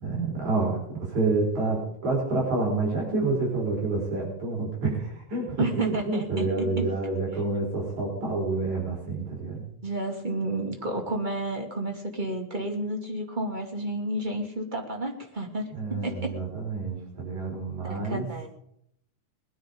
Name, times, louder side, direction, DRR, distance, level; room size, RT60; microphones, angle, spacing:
voice 1, 0.0-9.6 15.7-18.3, right 3 dB, 60° right, -2 dB, 5.7 m, -28 dB
voice 2, 5.6-6.9 9.8-16.3 17.8-18.5, right 1 dB, 15° right, 2 dB, 2.0 m, -31 dB
20.5 x 10.5 x 5.1 m, 0.72 s
omnidirectional pair, 3.7 m